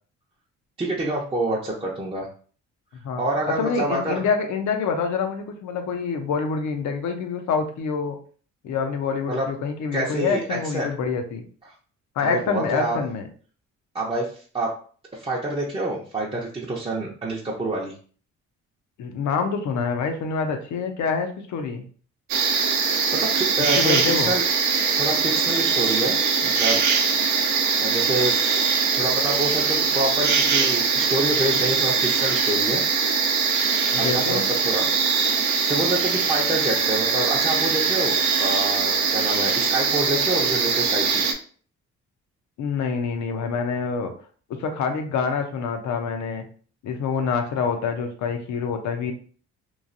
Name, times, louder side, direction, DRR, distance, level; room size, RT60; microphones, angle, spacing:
voice 1, 0.8-2.3 3.1-4.2 9.3-9.5 9.9-10.9 12.2-13.0 13.9-14.8 15.1-17.9 23.1-24.4 25.0-26.8 27.3-28.4 28.9-32.8 33.9-34.9 35.6-41.3, right 1 dB, 20° right, -4 dB, 0.6 m, -27 dB
voice 2, 2.9-8.2 8.6-11.4 12.2-13.3 19.0-21.9 23.8-24.3 33.9-34.5 42.6-44.1 44.5-46.5 46.8-49.1, left 5 dB, 70° left, 6 dB, 0.6 m, -26 dB
sound 1, 22.3-41.3, right 5 dB, 70° right, 0.6 m, -22 dB
3.1 x 2.3 x 2.5 m, 0.43 s
cardioid pair, 90°, 30 cm